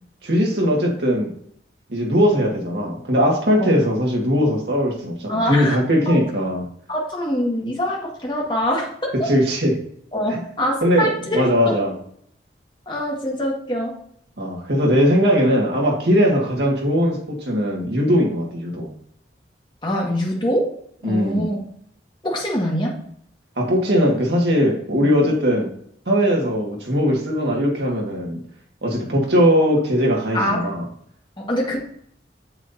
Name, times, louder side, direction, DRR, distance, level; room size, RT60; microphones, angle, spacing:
voice 1, 0.2-1.3 1.9-6.6 9.2-9.7 10.3-10.4 10.8-12.0 14.4-18.9 21.0-21.5 23.6-25.7 26.1-28.4 28.8-30.8, equal, 70° right, -1 dB, 1.9 m, -19 dB
voice 2, 5.3-5.8 6.1-6.2 6.9-9.1 10.1-11.8 12.9-13.9 19.8-20.7 21.0-21.6 22.2-23.0 30.3-30.7 31.4-31.8, equal, 25° left, -2 dB, 1.7 m, -24 dB
7.8 x 7.4 x 2.8 m, 0.67 s
head